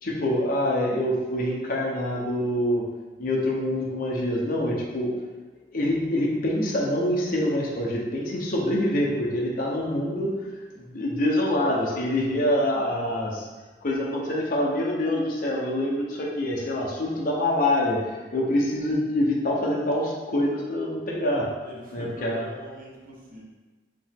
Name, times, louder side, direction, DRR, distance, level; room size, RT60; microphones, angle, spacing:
voice 1, 0.0-2.8 3.2-5.1 5.7-13.5 13.8-21.4 21.9-22.4, left 1 dB, 55° left, -3 dB, 0.8 m, -25 dB
voice 2, 9.7-10.1 21.6-23.4, equal, 55° right, -4 dB, 1.2 m, -44 dB
5.1 x 2.9 x 3.5 m, 1.3 s
head